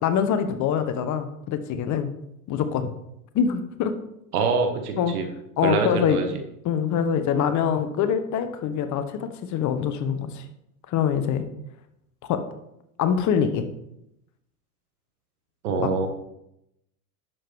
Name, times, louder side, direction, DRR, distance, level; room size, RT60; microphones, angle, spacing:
voice 1, 0.0-2.1 2.5-2.9 3.3-3.9 5.0-5.1 5.6-6.2 6.6-10.4 10.9-11.5 12.3-12.4 13.0-13.6 15.8-15.9, left 8 dB, 40° left, 9 dB, 1.2 m, -24 dB
voice 2, 4.3-5.3 5.6-6.3 15.6-16.1, right 4 dB, 75° right, 5 dB, 1.8 m, -24 dB
11.0 x 7.0 x 3.6 m, 0.80 s
hypercardioid pair, 85°, 45 cm